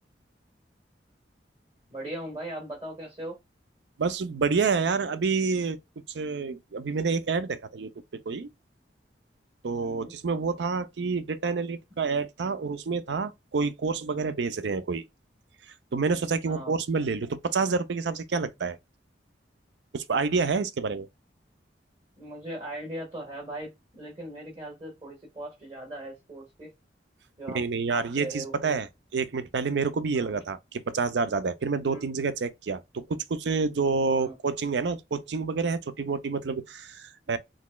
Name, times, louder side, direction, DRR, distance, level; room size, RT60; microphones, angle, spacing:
voice 1, 1.9-3.4 9.8-10.1 16.4-16.8 22.2-26.7 27.4-28.8 30.1-30.3 31.8-32.1 34.2-34.3, right 1 dB, 30° right, 1.5 m, -39 dB
voice 2, 4.0-5.8 6.1-8.5 9.6-15.0 15.9-18.8 19.9-21.1 27.5-28.9 29.1-37.4, right 4 dB, 75° right, 0.5 m, -28 dB
4.0 x 3.0 x 2.2 m
head